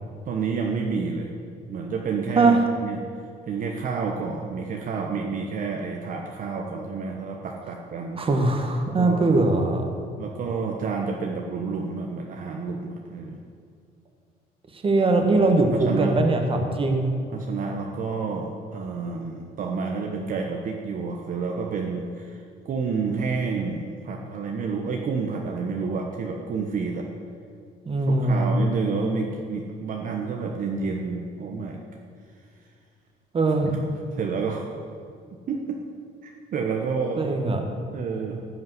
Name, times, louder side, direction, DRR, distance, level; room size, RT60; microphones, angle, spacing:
voice 1, 0.3-1.3 1.7-3.0 3.5-8.2 9.0-9.3 10.2-13.4 15.3-16.2 17.3-27.0 28.1-31.8 33.6-33.9 34.1-34.7 35.5-35.8 36.5-37.2 37.9-38.5, right 5 dB, 55° right, 1 dB, 1.2 m, -29 dB
voice 2, 8.2-9.9 14.7-17.1 27.8-28.5 33.3-33.7 37.2-37.6, right 2 dB, 30° right, 4 dB, 1.7 m, -21 dB
13.0 x 5.7 x 9.4 m, 2.3 s
cardioid pair, 110°, 17 cm